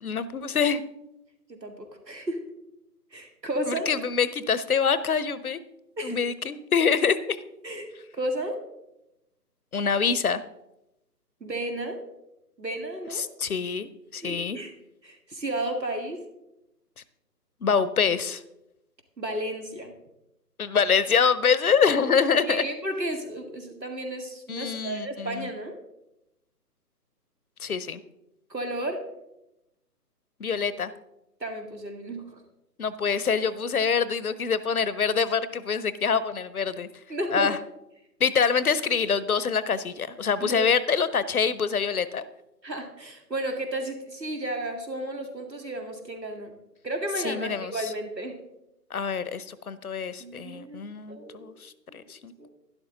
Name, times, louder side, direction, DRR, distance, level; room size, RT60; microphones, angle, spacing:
voice 1, 0.0-0.8 3.7-5.6 6.0-7.4 9.7-10.4 13.2-14.6 17.6-18.4 20.6-22.6 24.5-25.5 27.6-28.0 30.4-30.9 32.8-36.9 37.3-37.6 38.2-42.2 47.2-47.7 48.9-52.5, left 6 dB, 60° left, 16 dB, 0.8 m, -25 dB
voice 2, 1.5-2.4 3.1-3.9 6.0-6.2 7.6-7.9 8.1-8.6 11.4-12.0 12.6-13.2 14.2-14.7 15.0-16.2 19.2-19.9 22.5-25.7 28.5-29.0 31.4-32.4 37.1-37.5 40.4-40.8 42.6-46.5 46.8-48.4 50.2-51.5 51.9-52.0 52.4-52.5, right 1 dB, 90° right, 4 dB, 2.3 m, -33 dB
12.0 x 11.0 x 3.9 m, 0.89 s
figure-of-eight pair, 140°, 49 cm